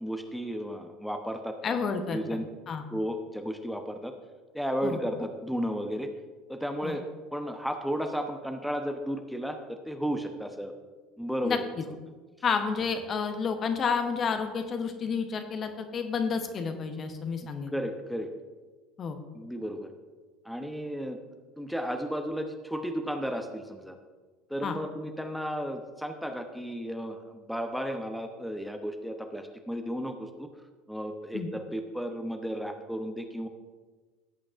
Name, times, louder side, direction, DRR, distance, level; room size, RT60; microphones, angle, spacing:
voice 1, 0.0-1.8 2.1-2.5 2.9-4.1 4.5-6.1 6.5-7.0 7.3-10.7 11.2-12.0 17.4-18.3 19.3-19.9 20.4-21.2 21.6-24.0 24.5-30.5 30.9-33.5, equal, ahead, 5 dB, 0.9 m, -34 dB
voice 2, 1.6-2.4 2.7-2.8 4.8-5.0 6.8-7.0 11.4-11.8 12.4-17.7 19.0-19.2 24.6-24.8 31.3-31.5, left 5 dB, 35° left, 6 dB, 1.0 m, -30 dB
16.5 x 8.5 x 2.6 m, 1.4 s
figure-of-eight pair, 65°, 0 cm